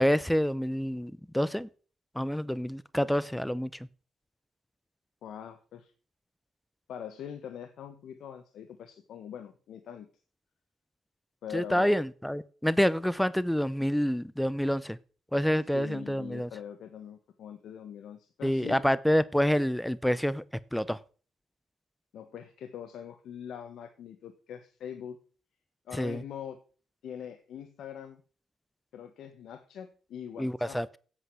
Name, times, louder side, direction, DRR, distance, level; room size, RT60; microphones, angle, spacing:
voice 1, 0.0-1.7 2.2-3.7 11.5-15.0 15.3-16.5 18.4-20.4 20.7-21.0 25.9-26.2 30.4-31.0, equal, 5° left, 0.6 m, -27 dB
voice 2, 5.2-5.9 6.9-10.1 11.4-12.0 15.7-18.8 22.1-25.2 25.9-26.6 27.0-28.2 28.9-30.8, left 9 dB, 70° left, 1.3 m, -43 dB
8.2 x 8.2 x 7.6 m
cardioid pair, 90°, 0 cm